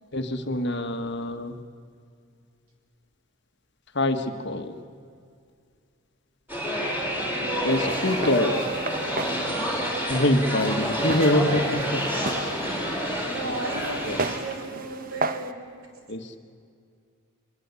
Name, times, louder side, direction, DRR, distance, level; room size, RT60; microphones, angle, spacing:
voice 1, 0.1-1.5 3.9-4.8 7.6-8.6 10.1-12.1 14.0-14.2 16.1-16.3, left 1 dB, 50° left, 7 dB, 1.6 m, -25 dB
sound 1, 6.5-14.4, equal, 10° right, 5.0 m, -28 dB
Walk footsteps, 7.7-15.5, right 3 dB, 40° right, 0.9 m, -35 dB
voice 2, 13.2-15.6, right 2 dB, 75° right, 2 dB, 5.2 m, -35 dB
24.0 x 22.0 x 8.4 m, 2.2 s
head